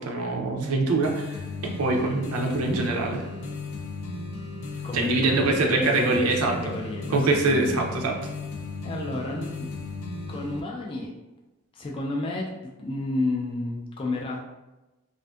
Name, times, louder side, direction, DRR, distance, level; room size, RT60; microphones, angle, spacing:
voice 1, 0.0-3.2 4.9-6.6 7.1-8.2, right 3 dB, 85° right, 1 dB, 0.5 m, -24 dB
sound 1, 1.0-10.6, left 3 dB, 85° left, 0.5 m, -35 dB
voice 2, 4.8-7.8 8.8-9.7 10.3-11.1 11.7-14.4, left 2 dB, 25° left, -1 dB, 0.3 m, -31 dB
2.5 x 2.5 x 2.3 m, 1.0 s
head